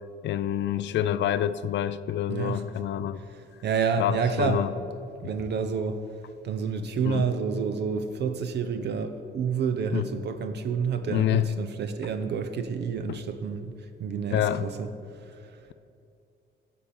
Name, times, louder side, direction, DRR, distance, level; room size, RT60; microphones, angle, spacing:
voice 1, 0.2-3.2 4.0-4.7 7.0-7.3 9.9-10.1 11.1-11.5 13.1-13.2 14.3-14.7, left 11 dB, 65° left, 14 dB, 0.4 m, -27 dB
voice 2, 2.3-2.6 3.2-4.9 5.2-6.0 6.4-15.5, right 6 dB, 60° right, 8 dB, 0.6 m, -29 dB
10.0 x 4.3 x 6.9 m, 2.6 s
cardioid pair, 90°, 20 cm